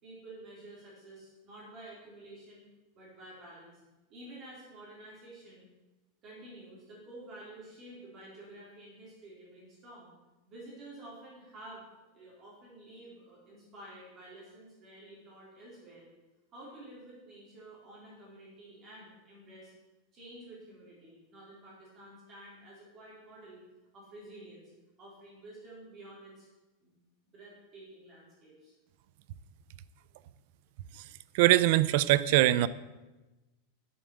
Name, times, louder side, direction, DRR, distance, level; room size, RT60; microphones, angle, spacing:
voice 1, 0.0-2.7 2.9-3.8 4.1-5.6 6.2-10.1 10.4-11.8 12.1-16.1 16.5-19.7 20.1-23.6 23.9-24.7 25.0-26.5 26.8-26.9 27.3-28.7, right 1 dB, 25° right, -6 dB, 3.9 m, -50 dB
voice 2, 31.3-32.7, right 15 dB, 50° right, 18 dB, 0.4 m, -22 dB
8.4 x 7.8 x 7.9 m, 1.1 s
supercardioid pair, 175°, 0 cm